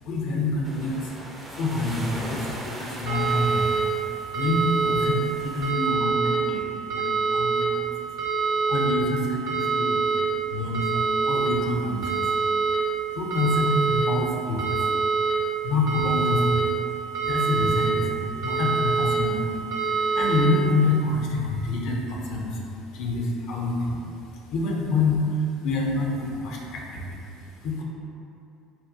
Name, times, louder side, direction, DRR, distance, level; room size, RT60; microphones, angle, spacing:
voice 1, 0.0-1.1 1.4-7.9 8.4-10.2 10.5-12.4 13.1-14.9 15.6-16.7 17.2-22.6 22.9-24.2 24.5-27.8, left 2 dB, 60° left, -1 dB, 0.5 m, -27 dB
sound 1, 0.6-5.7, right 1 dB, 20° right, 0.4 m, -40 dB
sound 2, 3.1-3.8 4.3-5.1 5.6-6.3 6.9-7.6 8.2-8.9 9.5-10.2 10.7-11.5 12.0-12.8 13.3-14.0 14.6-15.3 15.9-16.6 17.1-17.9 18.4-19.2 19.7-20.4, right 5 dB, 70° right, 0.8 m, -25 dB
2.7 x 2.1 x 3.5 m, 2.7 s
figure-of-eight pair, 65°, 0 cm